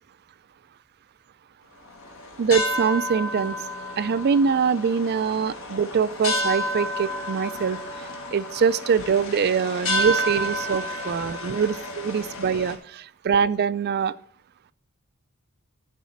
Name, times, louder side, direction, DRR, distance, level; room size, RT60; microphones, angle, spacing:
sound 1, 1.9-12.8, equal, 65° left, 1.7 m, -30 dB
voice 1, 2.4-3.6 4.0-7.8 8.3-14.1, right 6 dB, 45° right, 17 dB, 0.4 m, -23 dB
11.0 x 4.1 x 7.2 m, 0.62 s
head